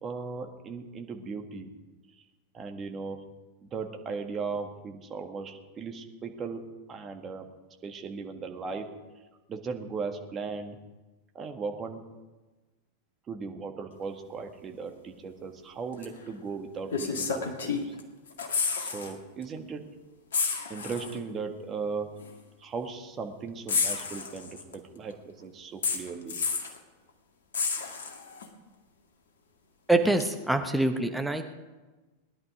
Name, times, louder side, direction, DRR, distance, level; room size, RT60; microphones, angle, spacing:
voice 1, 0.0-1.7 2.2-2.3 2.5-3.2 3.6-7.5 7.8-8.9 9.5-10.8 11.3-12.0 13.3-18.0 18.8-19.8 20.7-22.1 22.6-26.4, right 4 dB, 25° right, 4 dB, 1.8 m, -37 dB
sound 1, 16.0-16.2 16.9-18.0 18.3-19.1 19.4-19.6 20.3-21.2 22.2-22.3 23.7-24.7 25.8-26.8 27.5-28.5 30.2-30.3, left 5 dB, 65° left, 2.1 m, -30 dB
voice 2, 29.9-31.5, right 2 dB, ahead, 5 dB, 1.1 m, -25 dB
20.0 x 11.0 x 5.1 m, 1.2 s
figure-of-eight pair, 90°, 0 cm